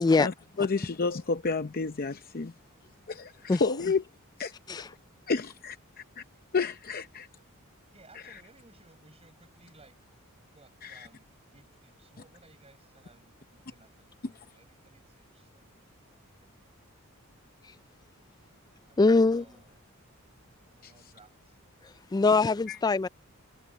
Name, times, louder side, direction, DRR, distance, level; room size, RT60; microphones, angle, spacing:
voice 1, 0.2-2.5 3.1-4.0 4.4-4.5 5.3-5.8 6.2-6.3 6.5-7.3 10.8-11.1 20.8-20.9 22.7-22.8, left 4 dB, 40° left, 0.7 m, -30 dB
voice 2, 4.8-5.2 7.9-10.0 10.4-16.8 18.9-19.8 20.7-21.6, right 2 dB, 30° right, 6.5 m, -60 dB
voice 3, 19.0-19.4 22.1-23.1, left 3 dB, 20° left, 0.3 m, -22 dB
head